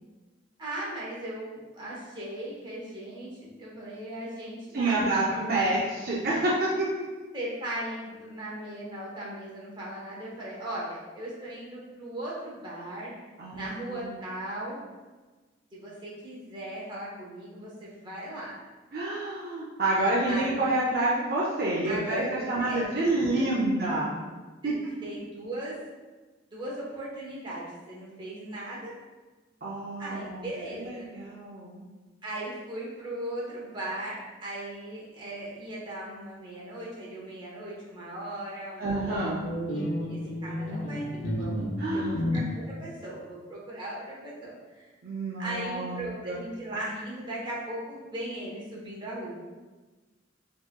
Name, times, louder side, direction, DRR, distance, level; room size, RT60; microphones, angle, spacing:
voice 1, 0.6-5.4 5.6-5.7 7.3-13.1 13.5-14.8 15.7-18.5 20.3-20.6 21.8-23.5 23.8-23.9 24.6-24.7 25.0-25.8 26.5-28.9 30.0-31.1 32.2-39.2 39.5-44.9 45.4-49.3, right 1 dB, 25° right, -6 dB, 0.9 m, -38 dB
voice 2, 4.7-6.9 13.4-14.1 18.9-24.1 24.6-24.8 29.6-30.4 30.7-31.9 38.8-39.4 41.8-42.2 45.0-46.4, right 2 dB, 50° right, -6 dB, 0.5 m, -28 dB
sound 1, 39.4-42.6, left 1 dB, 90° left, 0.6 m, -31 dB
4.5 x 2.9 x 2.2 m, 1.3 s
head